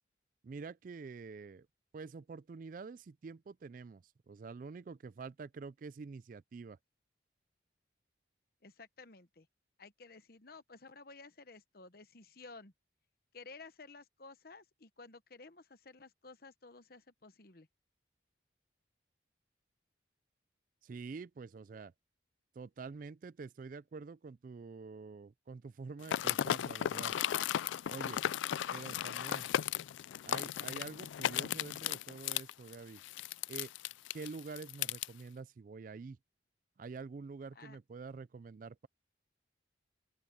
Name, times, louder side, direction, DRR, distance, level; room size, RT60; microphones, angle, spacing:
voice 1, 0.4-1.7 1.9-6.8 20.8-21.9 22.6-27.2 27.9-28.2 28.7-29.5 30.3-33.0 33.5-33.7 34.1-36.2 36.8-38.9, right 4 dB, 45° right, 0.3 m, -47 dB
voice 2, 8.6-9.5 9.8-12.7 13.3-17.7 37.5-37.8, left 3 dB, 50° left, 1.1 m, -54 dB
sound 1, 26.0-35.1, left 10 dB, 75° left, 0.3 m, -35 dB
open air
head